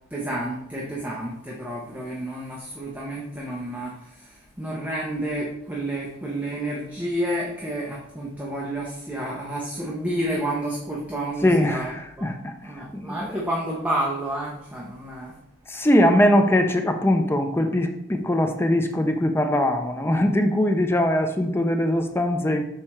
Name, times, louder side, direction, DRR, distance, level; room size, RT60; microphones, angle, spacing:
voice 1, 0.1-11.9 12.2-12.3 12.6-15.4, right 1 dB, 10° right, -4 dB, 0.8 m, -30 dB
voice 2, 11.4-13.4 15.7-22.6, left 1 dB, 10° left, 5 dB, 0.5 m, -21 dB
6.5 x 4.4 x 4.3 m, 0.79 s
head